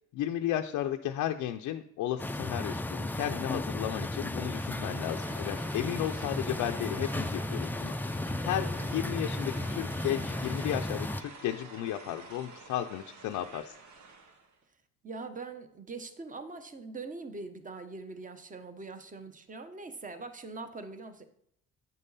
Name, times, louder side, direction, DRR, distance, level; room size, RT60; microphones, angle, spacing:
voice 1, 0.1-7.9 8.4-13.8, left 12 dB, 85° left, 4 dB, 0.5 m, -34 dB
sound 1, 2.2-11.2, left 1 dB, 5° left, 0.4 m, -34 dB
sound 2, 4.2-14.5, right 4 dB, 70° right, 1.2 m, -49 dB
voice 2, 15.0-21.2, right 3 dB, 25° right, 8 dB, 1.0 m, -42 dB
9.3 x 5.4 x 4.1 m, 0.71 s
cardioid pair, 90°, 30 cm